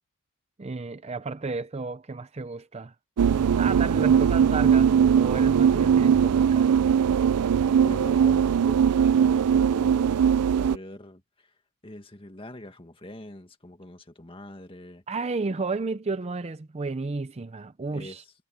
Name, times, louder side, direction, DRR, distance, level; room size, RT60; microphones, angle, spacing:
voice 1, 0.6-2.9 3.6-6.7 15.1-18.2, right 3 dB, 30° right, 0.5 m, -32 dB
sound 1, 3.2-10.8, right 7 dB, 90° right, 0.4 m, -20 dB
voice 2, 7.8-11.2 11.8-15.0 17.9-18.2, left 1 dB, 25° left, 1.9 m, -43 dB
head